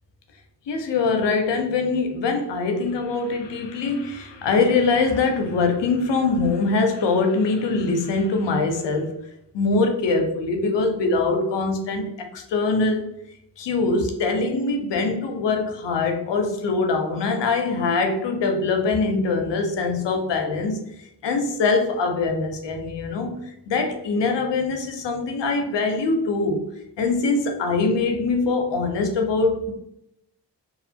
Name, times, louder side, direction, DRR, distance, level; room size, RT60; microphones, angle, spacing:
voice 1, 0.7-9.1 9.5-13.0 13.6-20.8 21.2-26.6 27.0-29.7, left 3 dB, 75° left, 4 dB, 0.7 m, -23 dB
2.8 x 2.0 x 2.6 m, 0.80 s
cardioid pair, 55°, 43 cm